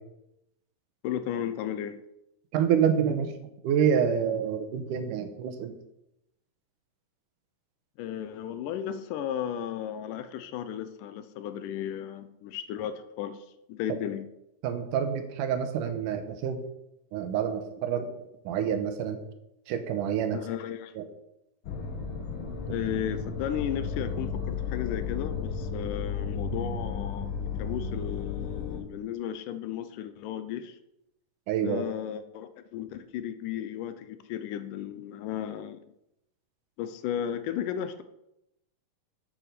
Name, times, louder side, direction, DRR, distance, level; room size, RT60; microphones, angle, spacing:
voice 1, 1.0-2.0 8.0-14.3 20.3-20.9 22.7-30.8 31.6-35.8 36.8-38.0, left 10 dB, 80° left, 11 dB, 2.1 m, -34 dB
voice 2, 2.5-3.3 3.6-5.8 14.6-16.6 17.1-18.1 18.5-19.2 19.7-20.4 21.0-21.1 22.7-22.8 31.5-31.8, right 8 dB, 75° right, 8 dB, 2.3 m, -27 dB
sound 1, 21.6-28.8, left 5 dB, 55° left, 1.6 m, -33 dB
7.6 x 7.3 x 6.6 m, 0.85 s
omnidirectional pair, 4.0 m